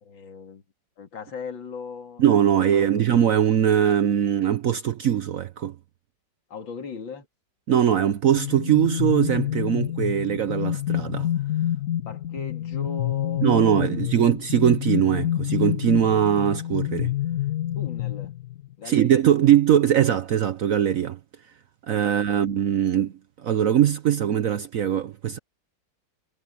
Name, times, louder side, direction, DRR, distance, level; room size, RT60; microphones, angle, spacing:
voice 1, 0.0-0.6 1.0-3.1 6.5-7.3 12.0-14.2 17.8-18.3 18.8-19.4 22.0-22.5, left 5 dB, 80° left, 3.0 m, -38 dB
voice 2, 2.2-5.8 7.7-11.3 13.4-17.1 18.8-21.2 21.9-23.1 23.4-25.4, right 10 dB, 60° right, 0.9 m, -21 dB
sound 1, 8.3-18.7, left 12 dB, 55° left, 1.5 m, -28 dB
omnidirectional pair, 2.1 m